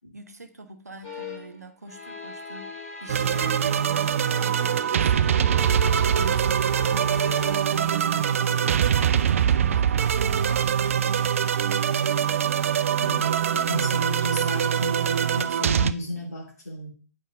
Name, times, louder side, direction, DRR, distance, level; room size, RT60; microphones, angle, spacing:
voice 1, 0.1-2.7 3.0-5.7 6.1-11.3, right 3 dB, 80° right, 6 dB, 0.9 m, -43 dB
sound 1, 1.0-1.6 1.9-3.8 4.1-7.8 8.4-8.7, left 5 dB, 45° left, 3.2 m, -39 dB
sound 2, 3.1-15.9, right 8 dB, 55° right, 0.4 m, -23 dB
voice 2, 13.0-16.9, left 2 dB, 80° left, -4 dB, 2.6 m, -33 dB
8.6 x 4.7 x 3.6 m, 0.37 s
figure-of-eight pair, 120°, 9 cm